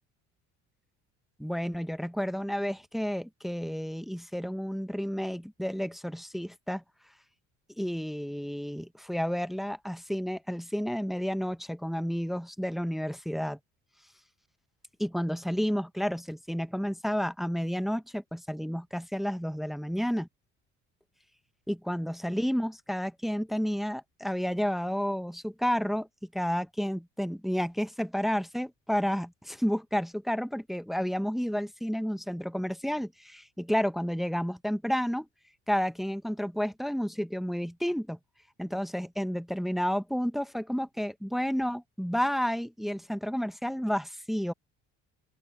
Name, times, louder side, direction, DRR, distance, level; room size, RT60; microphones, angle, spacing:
voice 1, 1.4-6.8 7.8-13.6 15.0-20.3 21.7-26.1 26.3-35.3 35.7-38.2 38.6-44.5, equal, ahead, 1.2 m, -31 dB
open air
hypercardioid pair, 65°, 35 cm